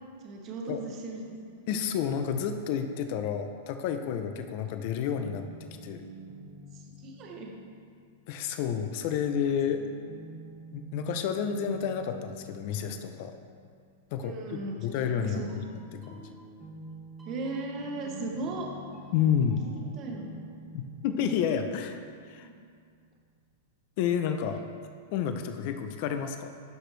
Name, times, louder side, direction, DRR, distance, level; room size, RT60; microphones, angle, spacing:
voice 1, 0.2-1.2 1.6-1.7 7.0-7.5 14.2-14.7 15.2-15.6 17.2-18.7 19.8-20.4 22.4-22.6, right 3 dB, 25° right, 0 dB, 0.9 m, -37 dB
voice 2, 1.7-6.0 8.3-9.8 10.7-13.4 14.1-15.4 15.9-16.3 19.1-19.7 20.7-22.0 22.3-22.5 24.0-24.6 25.1-26.5, left 8 dB, 40° left, 7 dB, 0.5 m, -30 dB
sound 1, 5.1-8.2 9.5-14.1 14.9-22.6, right 2 dB, 5° right, 1.0 m, -48 dB
12.0 x 5.0 x 3.3 m, 2.2 s
supercardioid pair, 165°, 0 cm